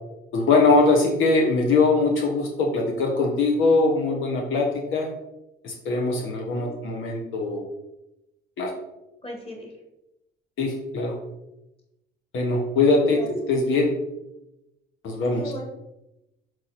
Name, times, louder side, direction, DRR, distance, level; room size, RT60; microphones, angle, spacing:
voice 1, 0.3-5.1 5.6-7.6 8.6-8.7 10.6-11.1 12.3-13.9 15.0-15.4, left 3 dB, 80° left, 1 dB, 1.3 m, -22 dB
voice 2, 9.2-9.7 13.0-13.3 15.3-15.7, left 1 dB, 30° left, 0 dB, 2.4 m, -37 dB
6.4 x 4.8 x 4.4 m, 0.91 s
cardioid pair, 90°, 20 cm